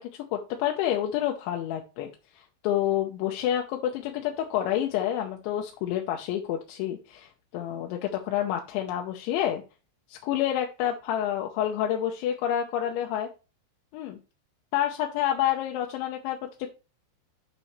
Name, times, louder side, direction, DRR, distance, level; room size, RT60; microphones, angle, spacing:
voice 1, 0.3-2.1 2.6-9.6 10.1-13.3 13.9-14.2 14.7-16.7, left 11 dB, 85° left, 2 dB, 3.2 m, -28 dB
9.9 x 6.9 x 3.1 m, 0.31 s
omnidirectional pair, 5.3 m